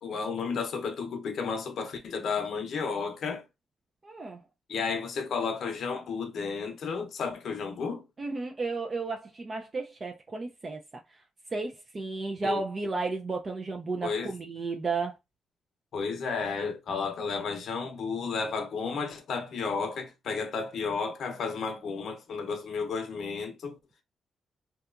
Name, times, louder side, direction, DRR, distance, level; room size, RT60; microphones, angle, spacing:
voice 1, 0.0-3.4 4.7-8.0 12.4-12.6 14.0-14.3 15.9-23.8, left 5 dB, 65° left, 0.6 m, -32 dB
voice 2, 4.0-4.4 8.2-10.8 11.1-11.2 11.5-15.2, right 3 dB, 30° right, 0.4 m, -33 dB
2.8 x 2.3 x 2.3 m
cardioid pair, 135°, 0 cm